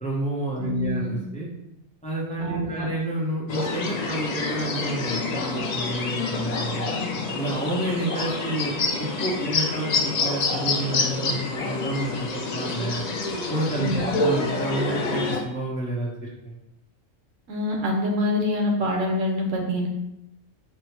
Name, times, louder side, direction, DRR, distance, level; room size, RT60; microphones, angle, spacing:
voice 1, 0.0-1.5 2.0-6.9 7.3-8.7 9.0-13.0 13.5-16.5, right 1 dB, 5° left, -5 dB, 0.6 m, -29 dB
voice 2, 0.6-1.2 2.4-2.9 13.8-14.2 17.5-19.9, left 1 dB, 75° right, 0 dB, 1.2 m, -26 dB
sound 1, 3.5-15.4, left 3 dB, 80° left, 0.3 m, -27 dB
4.6 x 2.0 x 4.5 m, 0.86 s
omnidirectional pair, 1.3 m